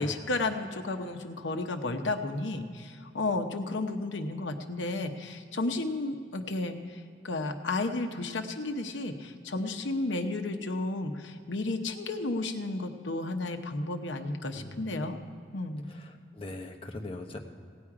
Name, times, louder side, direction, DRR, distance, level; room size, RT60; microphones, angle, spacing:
voice 1, 0.0-15.2 15.5-15.8, left 2 dB, 75° left, 6 dB, 0.9 m, -33 dB
voice 2, 14.5-15.1 15.9-17.4, left 2 dB, 30° left, 2 dB, 0.9 m, -41 dB
17.0 x 8.8 x 4.9 m, 2.3 s
head